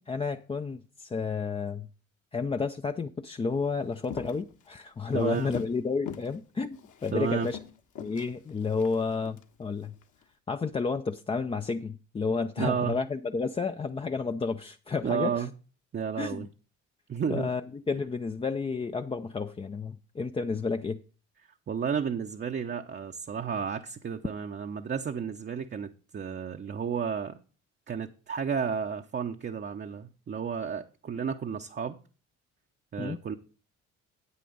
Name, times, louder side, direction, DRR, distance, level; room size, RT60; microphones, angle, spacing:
voice 1, 0.0-1.9 2.3-7.6 8.0-9.9 10.5-15.4 16.2-16.5 17.3-21.0 33.0-33.2, left 4 dB, 15° left, 0.4 m, -31 dB
Walk footsteps, 3.9-5.8 6.1-6.4 6.7-9.4 9.9-10.2, left 8 dB, 55° left, 1.3 m, -43 dB
voice 2, 5.1-5.5 7.1-7.5 12.6-13.0 15.0-15.5 15.9-16.5 17.1-17.5 21.7-27.4 27.9-32.0 32.9-33.4, right 7 dB, 30° right, 0.7 m, -32 dB
9.5 x 8.4 x 4.0 m
hypercardioid pair, 55°, 37 cm